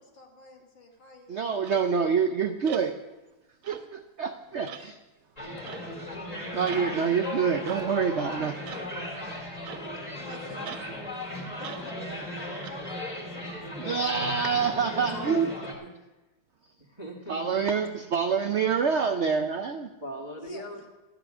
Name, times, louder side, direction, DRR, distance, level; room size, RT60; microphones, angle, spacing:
voice 1, 0.0-1.9 10.2-13.3 20.4-20.6, left 2 dB, 80° left, -1 dB, 2.5 m, -50 dB
voice 2, 1.3-3.0 3.7-3.8 4.2-5.0 6.3-8.6 13.7-15.5 17.3-19.9, right 6 dB, 85° right, 8 dB, 0.6 m, -26 dB
sound 1, 1.6-1.9 2.6-2.9 3.6-4.0 4.6-4.9 5.6-5.9 6.6-6.9 7.6-7.9 8.6-8.9 9.6-10.1 10.6-10.9 11.6-11.9 12.6-12.7, right 9 dB, 60° right, 0.9 m, -43 dB
noisy cambridge pub, 5.4-15.7, left 1 dB, 20° left, 2.6 m, -36 dB
voice 3, 14.9-15.5 15.8-15.9 16.8-17.6 20.0-20.9, right 1 dB, 15° right, -2 dB, 1.7 m, -40 dB
14.0 x 10.5 x 6.1 m, 1.1 s
omnidirectional pair, 2.0 m